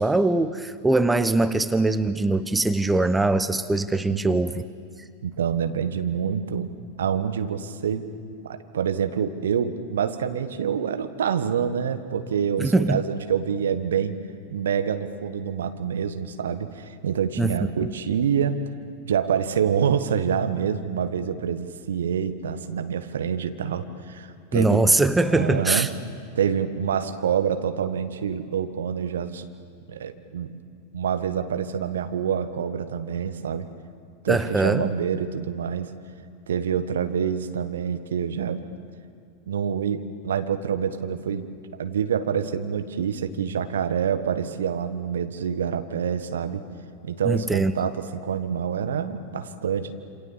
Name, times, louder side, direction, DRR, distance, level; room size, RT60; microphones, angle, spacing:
voice 1, 0.0-4.6 12.6-13.0 17.4-17.9 24.5-25.9 34.3-34.9 47.2-47.7, right 2 dB, 10° right, 12 dB, 0.8 m, -22 dB
voice 2, 4.1-4.4 5.2-6.7 7.0-8.1 8.4-14.2 14.5-18.6 19.0-24.9 25.3-25.9 26.3-29.5 29.9-30.5 30.9-33.7 34.2-35.9 36.5-38.6 39.5-41.5 41.8-46.6 47.0-49.9, right 8 dB, 65° right, 9 dB, 1.5 m, -26 dB
27.5 x 27.5 x 7.2 m, 2.3 s
figure-of-eight pair, 90°, 0 cm